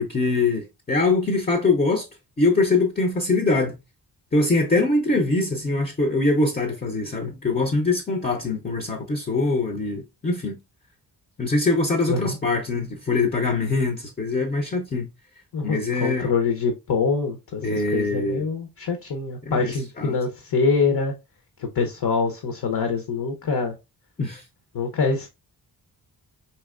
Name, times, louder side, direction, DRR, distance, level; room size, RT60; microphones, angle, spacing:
voice 1, 0.0-2.1 2.4-3.8 4.3-10.6 11.4-15.1 15.6-16.3 17.6-18.4 19.4-20.2 24.2-24.4, left 3 dB, 20° left, 0.5 m, -23 dB
voice 2, 15.5-21.1 21.6-23.7 24.7-25.3, left 4 dB, 60° left, 0.8 m, -25 dB
4.4 x 2.8 x 2.3 m
wide cardioid pair, 110°, 42 cm